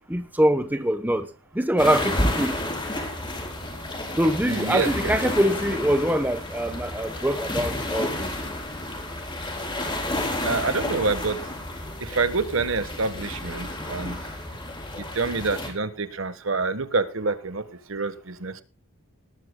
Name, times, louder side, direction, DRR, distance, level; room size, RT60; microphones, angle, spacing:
voice 1, 0.1-1.3 1.5-2.6 4.2-8.3, right 1 dB, 10° right, 0.9 m, -23 dB
sound 1, 1.8-15.7, left 1 dB, 20° left, 4.1 m, -31 dB
voice 2, 4.5-5.1 10.4-11.4 12.0-14.2 15.0-18.6, right 4 dB, 65° right, 1.3 m, -27 dB
19.5 x 13.5 x 2.3 m
head